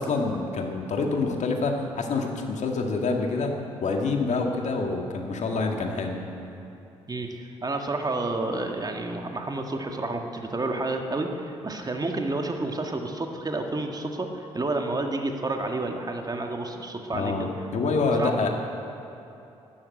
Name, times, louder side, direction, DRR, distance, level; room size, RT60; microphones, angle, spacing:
voice 1, 0.0-3.5 3.8-6.2 17.1-18.5, left 3 dB, 55° left, 2 dB, 2.0 m, -26 dB
voice 2, 7.1-17.5 18.2-18.4, right 2 dB, 25° right, 3 dB, 1.9 m, -30 dB
12.5 x 12.5 x 8.4 m, 2.9 s
hypercardioid pair, 45°, 15 cm